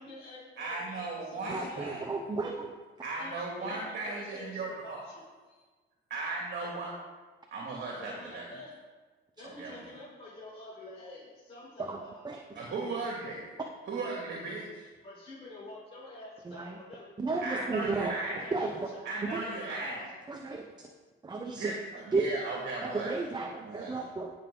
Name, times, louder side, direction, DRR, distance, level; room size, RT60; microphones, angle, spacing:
voice 1, 0.0-2.0 3.2-5.6 7.9-8.7 9.4-12.6 15.0-17.1 18.4-20.0 22.0-22.2, left 2 dB, 30° left, -7 dB, 4.2 m, -48 dB
voice 2, 0.6-2.0 3.0-5.0 6.1-6.9 7.5-8.4 9.6-9.7 12.5-13.4 13.9-14.9 17.4-18.4 19.0-20.0 21.4-23.1 23.6-23.9, right 3 dB, 55° right, -3 dB, 2.5 m, -36 dB
voice 3, 1.5-2.7 11.8-12.0 12.2-12.4 16.5-16.8 17.2-18.1 18.5-18.7 19.3-19.4 20.3-20.7 21.2-21.7 22.1-22.2 22.8-24.3, right 3 dB, 20° right, 3 dB, 0.8 m, -33 dB
17.0 x 6.9 x 3.9 m, 1.3 s
cardioid pair, 130°, 21 cm